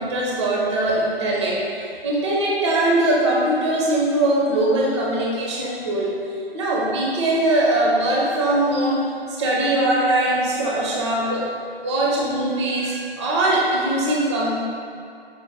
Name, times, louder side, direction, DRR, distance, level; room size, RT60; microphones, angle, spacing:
voice 1, 0.0-6.2 6.5-9.0 9.4-11.5 11.8-14.5, right 1 dB, 30° right, -4 dB, 0.5 m, -21 dB
5.1 x 2.1 x 4.0 m, 2.4 s
figure-of-eight pair, 140°, 31 cm